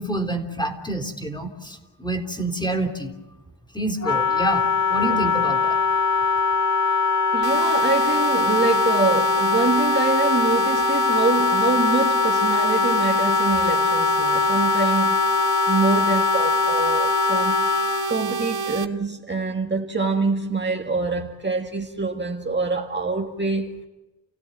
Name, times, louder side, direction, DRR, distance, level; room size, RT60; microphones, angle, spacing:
voice 1, 0.0-3.1 3.7-5.8, right 1 dB, 10° left, 3.5 m, -28 dB
Wind instrument woodwind instrument, 4.0-18.1, left 5 dB, 45° left, 0.9 m, -22 dB
voice 2, 7.3-15.2 15.7-17.7 18.1-23.8, right 4 dB, 25° right, 1.9 m, -25 dB
sound 1, 7.4-18.8, right 5 dB, 65° right, 1.8 m, -28 dB
30.0 x 16.5 x 9.5 m
wide cardioid pair, 115°, 40 cm